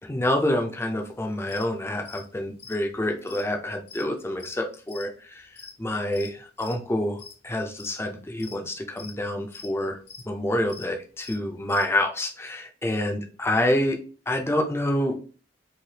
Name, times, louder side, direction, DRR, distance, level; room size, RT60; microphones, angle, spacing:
voice 1, 0.0-5.5 5.8-10.0 10.3-14.0 14.3-15.1, left 1 dB, 15° left, 2 dB, 0.5 m, -27 dB
sound 1, 1.1-1.2 1.5-1.7 1.9-6.3 6.6-6.9 7.2-7.5 7.8-8.1 8.4-9.2 9.5-9.7 10.0-10.3 10.7-10.9 11.1-11.9, left 6 dB, 60° left, 0.7 m, -44 dB
3.3 x 2.7 x 2.7 m, 0.37 s
head